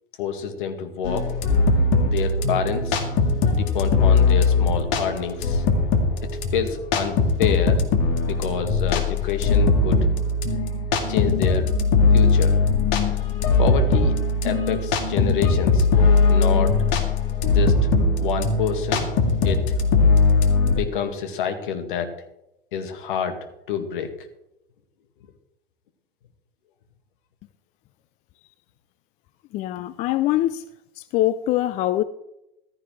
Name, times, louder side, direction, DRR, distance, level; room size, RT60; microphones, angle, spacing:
voice 1, 0.2-1.3 2.0-3.0 3.5-5.6 6.5-7.8 8.2-10.0 11.1-11.7 12.1-12.6 13.6-15.9 16.3-16.7 17.5-17.7 18.2-19.1 19.4-19.6 20.6-22.1 22.7-23.4 23.7-24.1, left 7 dB, 60° left, 2.0 m, -27 dB
sound 1, 1.0-20.8, left 3 dB, 40° left, 2.0 m, -20 dB
voice 2, 29.5-30.6 31.0-32.0, left 14 dB, 25° left, 0.4 m, -23 dB
14.5 x 13.5 x 3.3 m
figure-of-eight pair, 100°, 29 cm